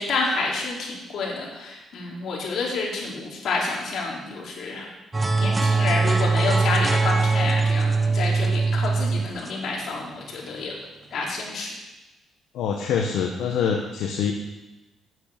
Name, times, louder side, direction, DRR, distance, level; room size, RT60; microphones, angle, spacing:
voice 1, 0.0-4.9 5.3-10.7 11.1-11.7, left 3 dB, 65° left, -2 dB, 4.0 m, -29 dB
sound 1, 5.1-10.5, right 4 dB, 25° right, 1.2 m, -22 dB
voice 2, 12.5-14.3, left 7 dB, 85° left, 2 dB, 1.2 m, -25 dB
9.5 x 8.1 x 8.7 m, 1.0 s
cardioid pair, 90°, 0 cm